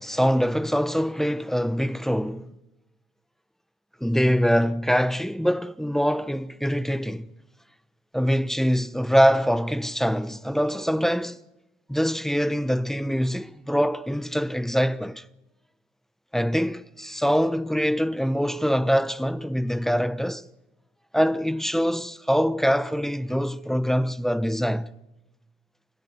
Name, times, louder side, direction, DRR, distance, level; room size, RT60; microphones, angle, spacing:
voice 1, 0.0-2.5 4.0-7.3 8.1-11.4 11.9-15.2 16.3-20.5 21.1-24.9, equal, ahead, 1.0 m, -24 dB
30.0 x 16.0 x 9.9 m
cardioid pair, 90°, 20 cm